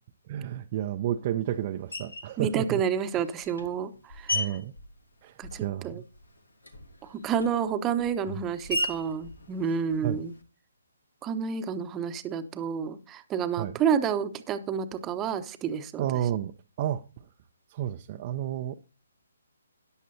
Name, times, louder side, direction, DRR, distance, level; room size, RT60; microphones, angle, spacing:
voice 1, 0.3-2.8 4.3-4.7 5.2-6.0 10.0-10.2 13.6-13.7 16.0-16.5 16.8-17.0 17.7-18.7, right 11 dB, 35° right, 0.6 m, -31 dB
Screech, 1.9-2.4 3.1-5.8 6.1-10.4, left 1 dB, 80° left, 2.2 m, -37 dB
voice 2, 2.4-4.4 5.4-6.0 7.0-10.3 11.2-16.1, right 7 dB, 15° right, 0.9 m, -29 dB
13.5 x 10.0 x 2.7 m
figure-of-eight pair, 135°, 0 cm